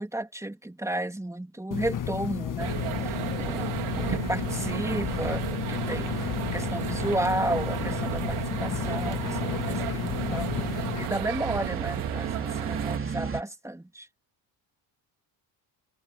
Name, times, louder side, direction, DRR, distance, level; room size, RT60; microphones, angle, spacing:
voice 1, 0.0-2.8 3.0-14.1, right 1 dB, 5° right, 3.2 m, -33 dB
sound 1, 1.7-11.1, left 8 dB, 40° left, 1.7 m, -32 dB
sound 2, 2.6-13.0, right 15 dB, 85° right, 2.8 m, -34 dB
sound 3, 5.1-13.4, right 5 dB, 25° right, 3.2 m, -38 dB
cardioid pair, 110°, 49 cm